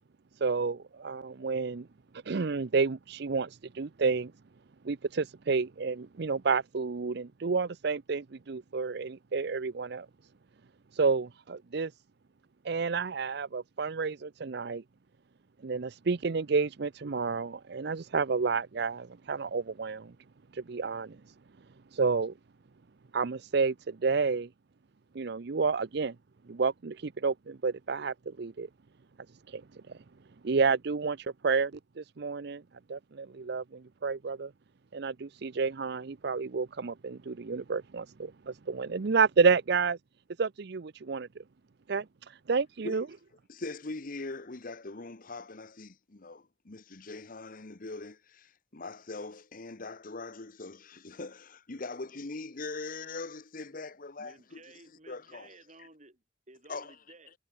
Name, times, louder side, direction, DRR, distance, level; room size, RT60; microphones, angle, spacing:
voice 1, 0.4-1.9 2.3-4.3 4.8-10.1 10.9-11.9 12.6-14.8 15.6-20.1 20.5-21.2 21.9-22.3 23.1-24.5 25.1-26.1 26.5-28.7 29.5-29.6 30.4-31.7 32.0-32.6 32.9-34.5 34.9-40.0 40.4-41.3 41.9-43.0, right 4 dB, 60° right, 0.6 m, -30 dB
voice 2, 43.5-54.6 55.1-55.5 56.7-56.9, left 3 dB, 45° left, 1.1 m, -41 dB
voice 3, 54.2-57.3, right 2 dB, 40° right, 4.6 m, -55 dB
head